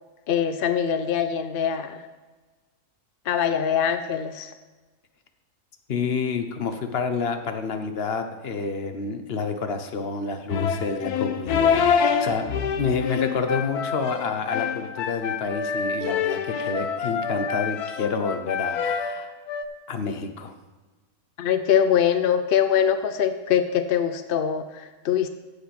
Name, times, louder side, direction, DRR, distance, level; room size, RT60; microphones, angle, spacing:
voice 1, 0.3-2.0 3.3-4.5 21.4-25.3, left 8 dB, 65° left, 9 dB, 0.5 m, -23 dB
voice 2, 5.9-12.4 12.7-19.3 19.9-20.5, left 5 dB, 45° left, 8 dB, 1.0 m, -29 dB
sound 1, 10.5-19.6, left 6 dB, 85° left, 1.3 m, -26 dB
15.0 x 5.1 x 6.0 m, 1.3 s
omnidirectional pair, 1.6 m